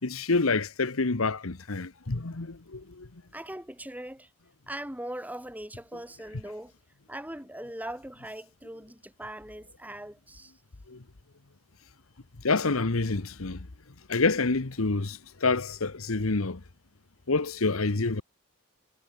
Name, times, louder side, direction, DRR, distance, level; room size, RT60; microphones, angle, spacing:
voice 1, 0.0-3.1 10.9-11.0 12.4-13.7 14.1-16.6 17.3-18.2, left 3 dB, 90° left, 1.2 m, -27 dB
voice 2, 3.3-4.3 4.7-6.7 7.1-10.5, right 1 dB, 10° right, 5.3 m, -40 dB
head